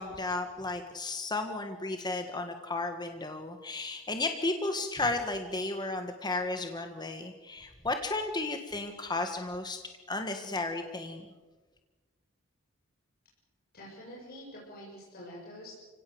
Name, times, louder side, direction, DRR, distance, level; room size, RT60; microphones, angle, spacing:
voice 1, 0.0-9.8 10.1-11.2, left 2 dB, 20° left, 5 dB, 1.6 m, -33 dB
voice 2, 13.7-15.7, equal, 50° left, -4 dB, 6.8 m, -46 dB
30.0 x 17.5 x 7.9 m, 1.3 s
head